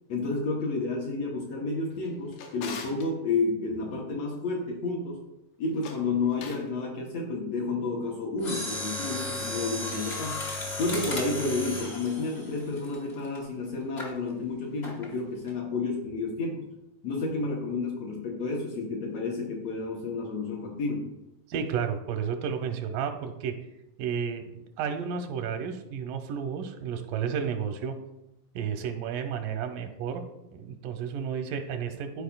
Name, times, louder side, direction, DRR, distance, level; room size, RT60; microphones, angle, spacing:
voice 1, 0.1-5.2 5.6-10.4 10.8-16.6 17.0-21.1, left 3 dB, 65° left, -2 dB, 1.7 m, -31 dB
Drawer open or close, 1.9-3.1 5.7-6.7, left 5 dB, 90° left, 2.5 m, -42 dB
Mechanisms, 8.4-13.4 14.0-14.2 14.8-15.1 15.5-15.6, left 2 dB, 50° left, 0.7 m, -35 dB
voice 2, 21.5-23.5 24.0-27.9 28.6-30.2 30.5-32.2, right 7 dB, 85° right, 6 dB, 2.3 m, -32 dB
12.5 x 4.8 x 2.3 m, 0.87 s
omnidirectional pair, 3.7 m